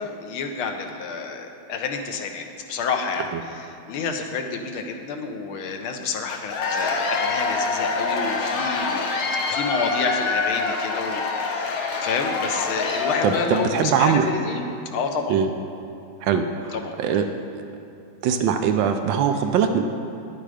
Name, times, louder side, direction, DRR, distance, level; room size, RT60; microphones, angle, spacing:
voice 1, 0.0-3.3 3.7-9.2 9.4-14.6 14.9-15.4 16.7-16.9, left 5 dB, 85° left, 4 dB, 1.7 m, -29 dB
Cheering / Applause / Crowd, 6.3-13.9, left 4 dB, 55° left, 1.1 m, -26 dB
voice 2, 13.2-14.3 15.3-15.5 16.2-17.2 17.5-17.6 18.2-19.8, right 7 dB, 75° right, 7 dB, 1.2 m, -22 dB
10.5 x 8.9 x 5.0 m, 2.6 s
omnidirectional pair, 2.3 m